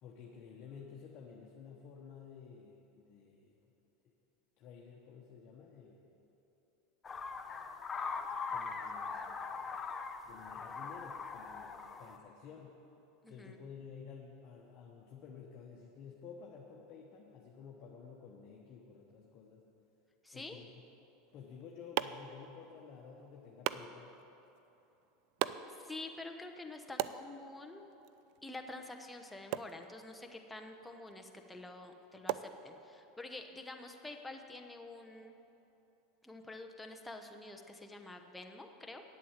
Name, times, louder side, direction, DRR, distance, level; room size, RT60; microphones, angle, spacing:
voice 1, 0.0-3.7 4.0-4.1 4.6-6.1 8.5-9.7 10.2-12.8 13.3-19.7 20.3-20.7 21.3-24.2, left 6 dB, 50° left, -2 dB, 1.1 m, -52 dB
sound 1, 7.0-12.2, left 5 dB, 25° left, 0.7 m, -41 dB
voice 2, 13.2-13.6 20.2-20.6 25.7-27.8 28.4-35.3 36.2-39.0, left 2 dB, 10° left, 3 dB, 1.0 m, -48 dB
sound 2, 21.3-33.2, right 13 dB, 60° right, 0.3 m, -44 dB
9.0 x 8.3 x 7.4 m, 3.0 s
supercardioid pair, 105°, 0 cm